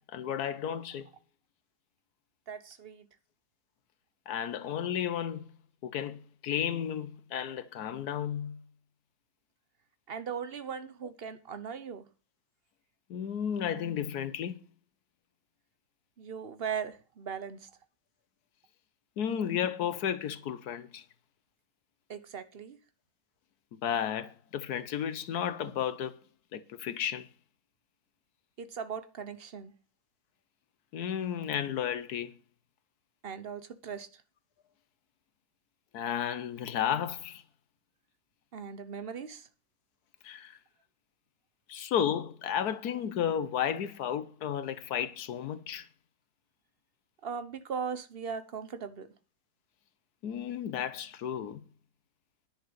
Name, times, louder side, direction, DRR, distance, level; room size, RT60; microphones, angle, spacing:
voice 1, 0.1-1.1 4.3-5.4 5.8-8.6 13.1-14.5 19.2-21.0 23.7-26.1 26.5-27.3 30.9-32.3 35.9-37.4 40.2-40.6 41.7-45.9 50.2-51.6, left 9 dB, 85° left, 1.4 m, -33 dB
voice 2, 2.5-3.1 10.1-12.0 16.2-17.6 22.1-22.8 28.6-29.7 33.2-34.1 38.5-39.4 47.2-49.1, right 6 dB, 45° right, 1.2 m, -38 dB
10.5 x 6.8 x 8.0 m
omnidirectional pair, 1.6 m